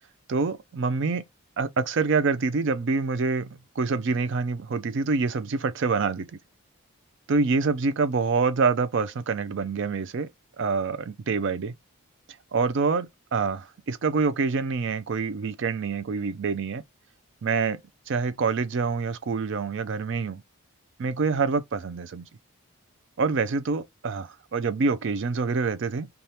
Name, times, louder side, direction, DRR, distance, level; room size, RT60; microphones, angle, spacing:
voice 1, 0.3-1.2 1.6-6.3 7.3-10.3 10.6-11.7 12.5-16.8 17.4-17.8 18.1-20.4 21.0-22.3 23.2-26.1, right 4 dB, 55° right, 0.4 m, -26 dB
2.8 x 2.3 x 3.3 m
head